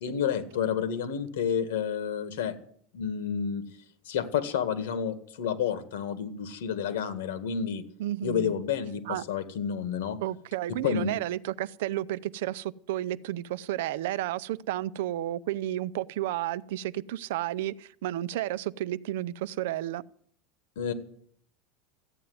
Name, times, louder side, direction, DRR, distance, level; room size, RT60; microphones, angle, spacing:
voice 1, 0.0-2.5 2.9-3.6 4.1-7.8 8.2-10.2 10.8-11.1 20.8-20.9, left 8 dB, 80° left, 1.9 m, -30 dB
voice 2, 8.0-8.6 9.0-9.2 10.2-20.0, right 14 dB, 70° right, 0.6 m, -32 dB
14.0 x 9.2 x 9.5 m
supercardioid pair, 175°, 0 cm